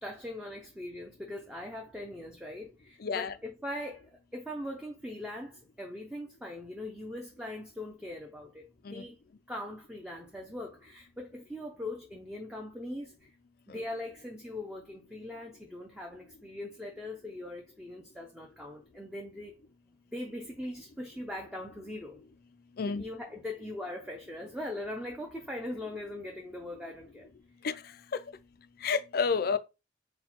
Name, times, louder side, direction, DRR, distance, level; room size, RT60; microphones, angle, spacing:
voice 1, 0.0-8.7 8.9-9.2 9.5-13.3 13.7-19.5 20.1-22.2 22.8-27.3, left 1 dB, 5° right, 0.6 m, -41 dB
voice 2, 3.0-3.3 8.9-9.0 13.7-13.8 22.8-23.0 27.6-27.7 28.1-28.2 28.8-29.6, left 5 dB, 55° left, 0.4 m, -29 dB
4.3 x 2.2 x 4.3 m
head